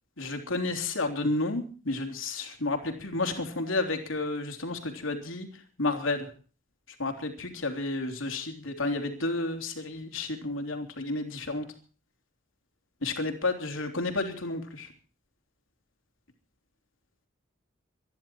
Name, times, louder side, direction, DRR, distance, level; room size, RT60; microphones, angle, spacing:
voice 1, 0.2-5.5 5.8-6.3 7.0-11.7 13.0-14.9, left 2 dB, 80° left, 5 dB, 3.4 m, -31 dB
25.5 x 11.0 x 4.5 m, 0.38 s
head